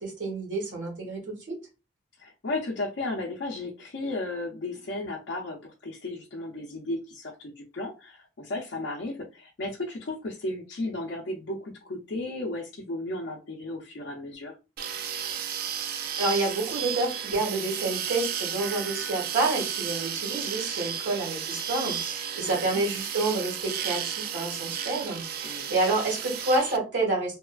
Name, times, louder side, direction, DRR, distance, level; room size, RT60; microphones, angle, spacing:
voice 1, 0.0-1.5 16.2-27.4, right 2 dB, 80° right, -3 dB, 1.5 m, -29 dB
voice 2, 2.2-14.6 22.4-22.8 25.4-25.7, left 2 dB, 70° left, -2 dB, 0.5 m, -34 dB
sound 1, 14.8-26.8, right 8 dB, 55° right, 0.3 m, -33 dB
2.8 x 2.3 x 2.3 m, 0.29 s
head